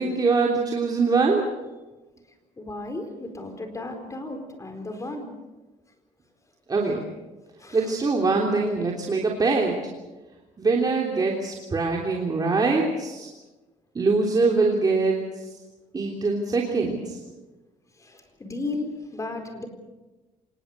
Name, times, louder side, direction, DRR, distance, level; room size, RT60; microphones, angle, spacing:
voice 1, 0.0-1.5 6.7-7.0 7.7-9.8 10.6-13.3 13.9-15.2 15.9-17.2, right 3 dB, 30° right, -1 dB, 3.3 m, -23 dB
voice 2, 2.6-5.3 6.8-6.9 7.6-7.9 18.0-19.7, left 2 dB, 25° left, 6 dB, 4.4 m, -34 dB
26.0 x 20.5 x 6.7 m, 1.2 s
cardioid pair, 110°, 13 cm